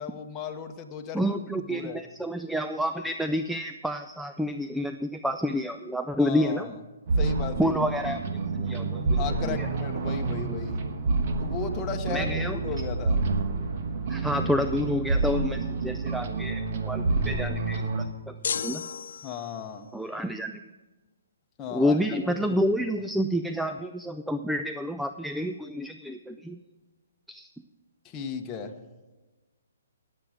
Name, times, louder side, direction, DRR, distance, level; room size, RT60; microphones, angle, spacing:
voice 1, 0.0-1.3 1.7-2.0 6.2-6.7 7.2-7.7 9.2-10.8 11.4-13.2 19.2-19.9 21.6-22.6 28.0-28.7, left 6 dB, 20° left, 3 dB, 0.9 m, -35 dB
voice 2, 1.1-6.8 7.6-8.2 8.5-9.7 12.1-12.6 14.1-18.4 18.6-18.9 19.9-20.6 21.7-26.6 27.3-27.5, equal, ahead, 7 dB, 0.4 m, -29 dB
sound 1, 7.1-18.1, right 3 dB, 50° right, 1.3 m, -28 dB
sound 2, 18.4-19.8, left 6 dB, 65° left, 0.5 m, -33 dB
17.5 x 7.7 x 5.0 m, 1.2 s
hypercardioid pair, 145°, 0 cm